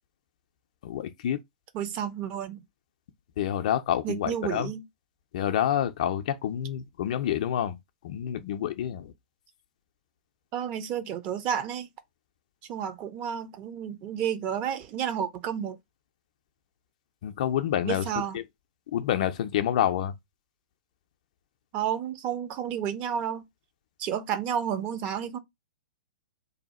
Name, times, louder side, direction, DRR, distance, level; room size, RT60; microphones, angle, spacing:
voice 1, 0.8-1.4 3.4-4.7 5.3-7.8 8.0-9.1 17.2-18.1 18.3-18.4 18.9-20.1, left 10 dB, 55° left, 0.4 m, -28 dB
voice 2, 1.7-2.6 4.0-4.8 10.5-11.9 12.7-15.8 17.8-18.4 21.7-23.4 24.0-25.4, right 9 dB, 35° right, 0.5 m, -31 dB
2.7 x 2.2 x 4.1 m
figure-of-eight pair, 105°, 5 cm